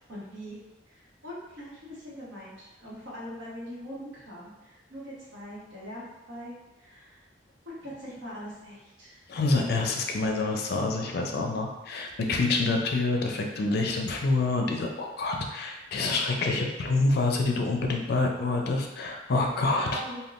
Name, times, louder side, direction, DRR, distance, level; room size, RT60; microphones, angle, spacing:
voice 1, 0.1-0.6 0.9-7.2 7.6-9.2 19.8-20.2, equal, 80° right, -7 dB, 1.1 m, -42 dB
voice 2, 9.3-20.0, left 3 dB, 60° left, 2 dB, 0.4 m, -27 dB
3.5 x 2.2 x 2.4 m, 1.1 s
head